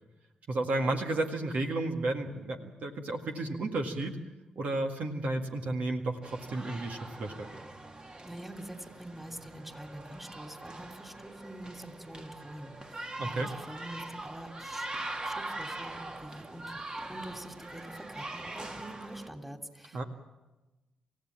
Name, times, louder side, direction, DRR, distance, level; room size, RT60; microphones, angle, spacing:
voice 1, 0.5-4.2 4.6-7.5 13.2-13.5 19.9-20.0, right 2 dB, 60° right, 3 dB, 2.0 m, -32 dB
sound 1, 6.2-19.3, right 2 dB, 30° right, 2.0 m, -42 dB
voice 2, 8.2-14.9 15.2-16.8 17.1-20.0, right 1 dB, 5° right, 5 dB, 3.0 m, -45 dB
28.0 x 15.5 x 7.5 m, 1.1 s
hypercardioid pair, 40°, 3 cm